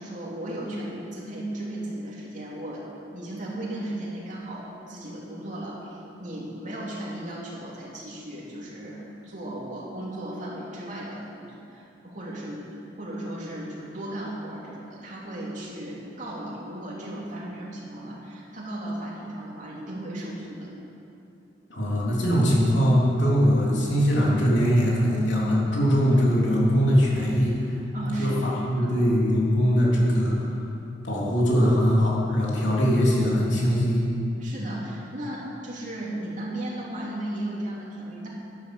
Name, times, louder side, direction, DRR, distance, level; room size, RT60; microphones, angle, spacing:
voice 1, 0.0-2.9 3.1-20.7 27.9-28.9 34.4-38.3, right 1 dB, 45° right, -5 dB, 3.0 m, -35 dB
voice 2, 21.7-27.5 28.2-30.5 31.0-34.0, equal, 75° left, -5 dB, 3.3 m, -21 dB
11.0 x 11.0 x 6.8 m, 2.9 s
head